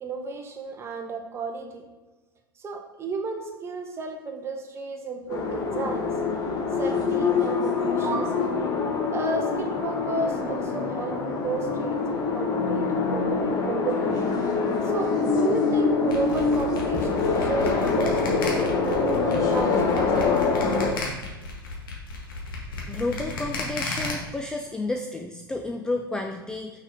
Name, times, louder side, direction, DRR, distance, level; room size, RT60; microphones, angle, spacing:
voice 1, 0.0-1.9 2.6-6.1 6.8-8.4 9.1-14.1 14.8-18.5 18.8-20.4, right 3 dB, 20° right, 4 dB, 1.0 m, -33 dB
sound 1, 5.3-20.9, left 4 dB, 30° left, 1.0 m, -25 dB
sound 2, 16.1-24.1, left 3 dB, 65° left, 1.7 m, -34 dB
voice 2, 22.9-26.7, left 2 dB, 5° left, 4 dB, 0.3 m, -31 dB
6.1 x 5.9 x 3.9 m, 1.2 s
figure-of-eight pair, 90°, 12 cm